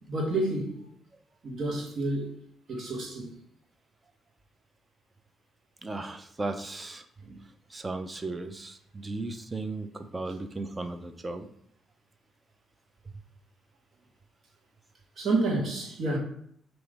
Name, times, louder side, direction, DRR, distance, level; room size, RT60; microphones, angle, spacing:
voice 1, 0.1-0.9 1.4-2.3 2.7-3.3 7.2-7.4 15.2-16.2, right 2 dB, 60° right, 1.6 m, -29 dB
voice 2, 5.8-7.0 7.7-11.5, right 2 dB, 25° right, 0.6 m, -36 dB
5.0 x 3.0 x 3.4 m
supercardioid pair, 60°, 0 cm